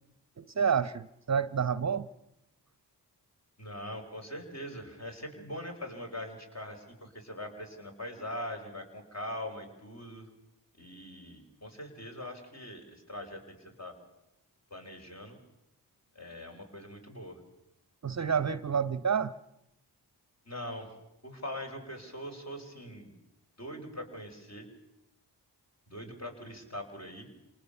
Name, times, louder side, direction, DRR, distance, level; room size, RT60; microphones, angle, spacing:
voice 1, 0.4-2.1 18.0-19.3, right 7 dB, 40° right, 16 dB, 0.8 m, -29 dB
voice 2, 3.6-10.3 10.8-14.0 14.7-15.4 16.1-17.4 20.5-20.9 21.2-23.1 23.6-24.7 25.9-27.3, left 1 dB, 40° left, 2 dB, 5.7 m, -42 dB
27.0 x 19.0 x 6.9 m, 0.87 s
cardioid pair, 50°, 42 cm